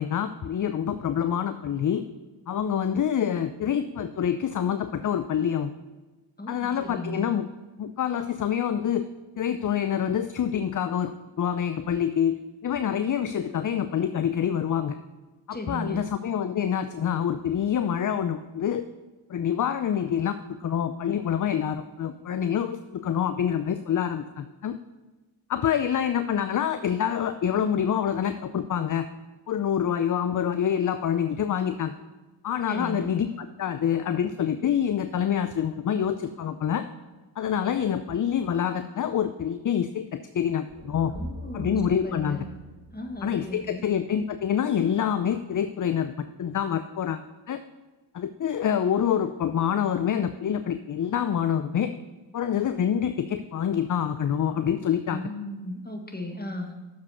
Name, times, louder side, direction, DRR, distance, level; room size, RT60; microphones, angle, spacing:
voice 1, 0.0-2.1 2.5-5.7 6.5-7.5 7.8-9.1 9.4-15.0 15.5-18.8 19.3-24.8 25.5-29.1 29.5-31.9 32.4-36.8 37.4-41.1 41.5-42.4 43.2-47.2 47.5-47.6 48.1-51.9 52.3-55.2, left 8 dB, 40° left, 10 dB, 0.5 m, -26 dB
voice 2, 6.4-7.3 15.5-16.2 32.7-33.1 41.1-42.5 42.9-43.9 55.0-56.8, left 1 dB, 20° left, 3 dB, 1.6 m, -36 dB
sound 1, 40.7-44.8, left 1 dB, 20° right, 1.8 m, -42 dB
6.9 x 5.3 x 6.5 m, 1.2 s
supercardioid pair, 40°, 48 cm